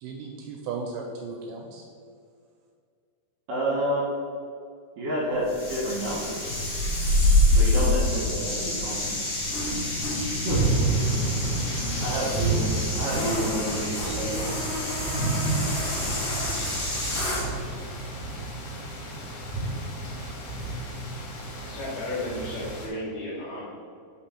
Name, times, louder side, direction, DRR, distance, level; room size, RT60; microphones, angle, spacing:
voice 1, 0.0-1.9 17.2-17.3, right 4 dB, 80° right, 1 dB, 2.6 m, -36 dB
voice 2, 3.5-4.2 5.0-6.5 7.5-9.1 9.5-9.6 10.4-10.7 12.0-14.4, right 1 dB, 65° right, -6 dB, 2.3 m, -29 dB
sound 1, 5.5-17.5, left 1 dB, 50° left, 2.4 m, -27 dB
sound 2, 10.5-22.9, right 3 dB, 85° left, 3.8 m, -30 dB
voice 3, 21.6-23.6, left 1 dB, 65° left, -6 dB, 3.1 m, -33 dB
5.9 x 5.5 x 4.4 m, 2.2 s
omnidirectional pair, 5.3 m